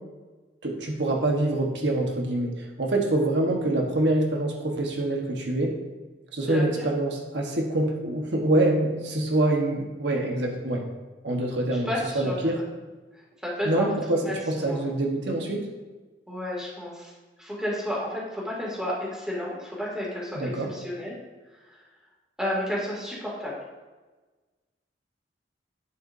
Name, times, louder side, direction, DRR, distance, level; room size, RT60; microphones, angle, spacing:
voice 1, 0.6-5.7 6.3-10.8 11.2-12.6 13.6-15.7 20.3-20.7, right 1 dB, 80° right, 1 dB, 1.3 m, -25 dB
voice 2, 6.5-6.8 11.9-12.4 13.4-13.9 14.3-14.4 14.6-14.9 16.3-17.1 17.4-21.1 21.6-21.8 22.4-23.6, left 1 dB, 5° right, -5 dB, 2.4 m, -31 dB
11.0 x 8.3 x 2.7 m, 1.3 s
head